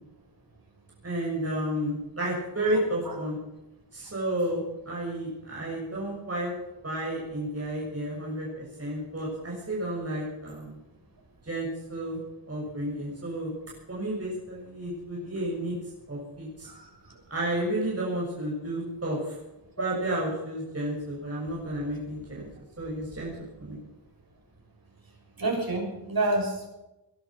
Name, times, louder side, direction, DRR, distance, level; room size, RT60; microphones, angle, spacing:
voice 1, 1.0-3.4 3.9-6.5 6.8-10.7 11.4-12.2 12.5-13.5 13.9-15.8 16.1-16.7 17.3-19.4 19.8-22.4 22.8-23.3 23.6-23.8, right 1 dB, 35° right, -4 dB, 6.6 m, -31 dB
voice 2, 25.4-26.7, right 2 dB, 55° right, 1 dB, 6.6 m, -28 dB
21.0 x 11.5 x 5.9 m, 0.94 s
wide cardioid pair, 110°, 42 cm